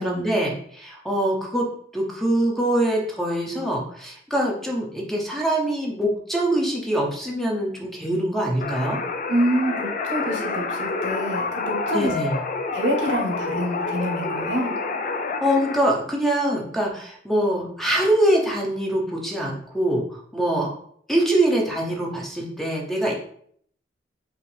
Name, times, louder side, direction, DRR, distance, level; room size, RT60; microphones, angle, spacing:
voice 1, 0.0-1.6 1.9-9.0 11.9-12.4 15.4-20.0 20.3-20.7 21.1-23.1, right 1 dB, ahead, -1 dB, 0.7 m, -23 dB
sound 1, 8.6-15.8, left 3 dB, 45° left, 0.5 m, -28 dB
voice 2, 9.3-12.1 12.7-14.7, equal, 90° right, 1 dB, 1.2 m, -26 dB
4.8 x 2.7 x 3.3 m, 0.62 s
head